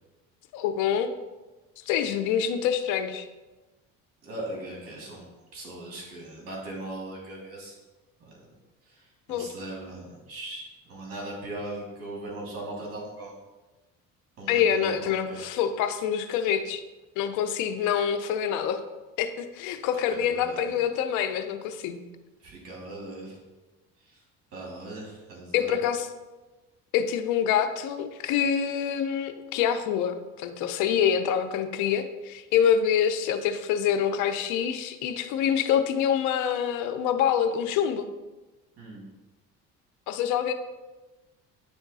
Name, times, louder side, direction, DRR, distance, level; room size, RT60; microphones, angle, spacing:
voice 1, 0.5-1.1 1.9-3.2 9.3-9.5 14.5-16.8 17.2-18.8 19.2-22.0 25.5-26.1 26.9-38.1 40.1-40.5, left 8 dB, 75° left, 8 dB, 0.8 m, -26 dB
voice 2, 4.2-5.2 5.5-7.8 8.3-8.4 8.8-13.3 14.4-15.5 20.1-20.8 22.4-23.4 24.0-24.2 24.5-25.8 38.8-39.1, right 1 dB, 50° right, -3 dB, 2.4 m, -39 dB
9.8 x 3.6 x 4.1 m, 1.2 s
supercardioid pair, 100°, 30 cm